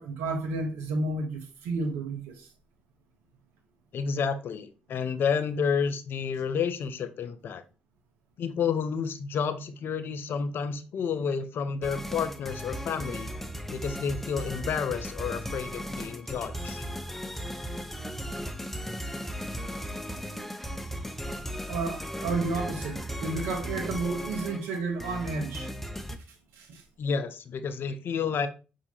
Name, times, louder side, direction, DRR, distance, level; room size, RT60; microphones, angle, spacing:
voice 1, 0.0-2.5 21.7-25.7 26.5-26.8, right 3 dB, 85° right, 0.8 m, -31 dB
voice 2, 3.9-7.6 8.4-13.3 13.7-16.8 27.0-28.5, left 6 dB, 65° left, 0.5 m, -30 dB
sound 1, 11.8-26.2, equal, 5° left, 0.6 m, -36 dB
5.7 x 2.7 x 2.7 m
hypercardioid pair, 45°, 4 cm